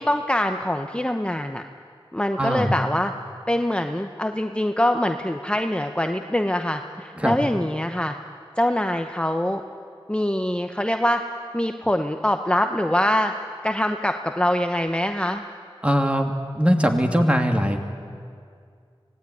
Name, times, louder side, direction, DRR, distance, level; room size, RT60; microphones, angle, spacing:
voice 1, 0.0-1.6 2.1-3.1 3.5-8.2 8.6-9.6 10.1-11.2 11.5-13.3 13.6-15.4, left 1 dB, 10° left, 6 dB, 1.0 m, -24 dB
voice 2, 2.4-2.7 7.2-7.3 15.8-17.8, equal, 10° right, 3 dB, 2.8 m, -21 dB
25.5 x 18.0 x 9.5 m, 2.2 s
wide cardioid pair, 40°, 10 cm